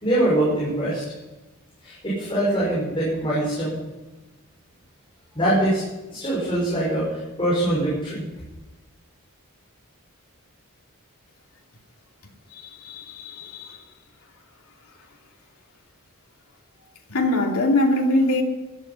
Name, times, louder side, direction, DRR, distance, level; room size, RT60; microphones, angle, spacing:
voice 1, 0.0-1.0 1.8-3.8 5.3-5.8 6.1-8.2, right 1 dB, 25° left, 5.8 m, -23 dB
voice 2, 12.5-13.8 17.1-18.4, left 1 dB, 75° left, 2.8 m, -23 dB
16.5 x 12.0 x 5.7 m
head